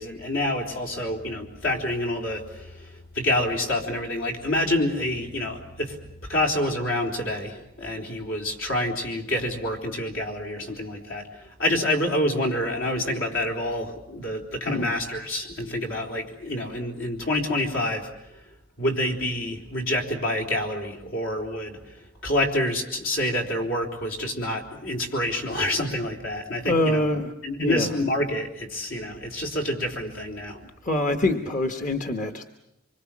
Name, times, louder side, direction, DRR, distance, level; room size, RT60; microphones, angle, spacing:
voice 1, 0.0-18.4 18.8-27.1 27.4-30.6, left 1 dB, 75° left, 2 dB, 4.0 m, -27 dB
voice 2, 26.6-27.3 27.6-27.9 30.8-32.5, left 1 dB, 40° left, 6 dB, 1.3 m, -25 dB
25.5 x 24.5 x 7.3 m, 0.84 s
head